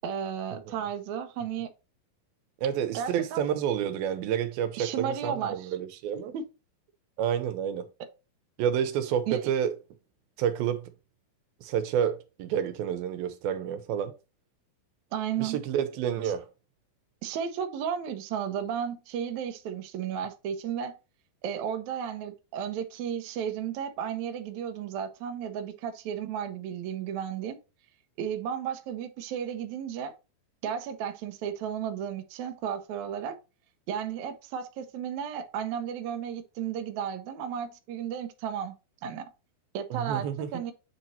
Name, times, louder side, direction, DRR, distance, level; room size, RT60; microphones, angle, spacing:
voice 1, 0.0-1.7 2.9-3.4 4.8-5.6 6.1-6.4 9.3-9.5 15.1-15.6 17.2-20.9 21.4-27.6 28.2-30.1 30.6-33.4 33.9-38.8 39.0-39.2 39.7-40.3 40.5-40.7, right 8 dB, 75° right, 1.8 m, -33 dB
voice 2, 2.6-6.3 7.2-7.9 8.6-9.7 10.4-10.9 11.6-14.1 15.4-16.5 39.9-40.5, right 9 dB, 90° right, 2.7 m, -29 dB
8.4 x 2.9 x 4.1 m
omnidirectional pair, 4.1 m